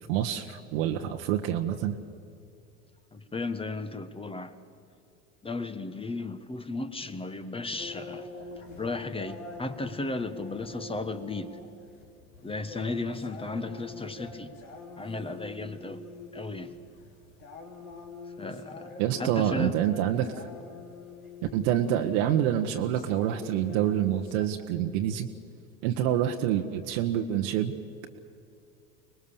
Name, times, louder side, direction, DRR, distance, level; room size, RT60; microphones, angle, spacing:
voice 1, 0.0-2.0 19.0-20.5 21.5-25.3 25.8-27.7, right 10 dB, 60° right, 4 dB, 1.3 m, -27 dB
voice 2, 3.1-4.5 5.4-8.3 8.8-11.5 12.4-14.5 15.0-16.0 16.3-16.7 18.4-18.9 19.2-19.8, left 2 dB, 15° left, 11 dB, 1.3 m, -35 dB
sound 1, 7.8-24.5, left 3 dB, 80° left, 3.4 m, -45 dB
25.0 x 20.5 x 7.1 m, 2.5 s
hypercardioid pair, 85°, 42 cm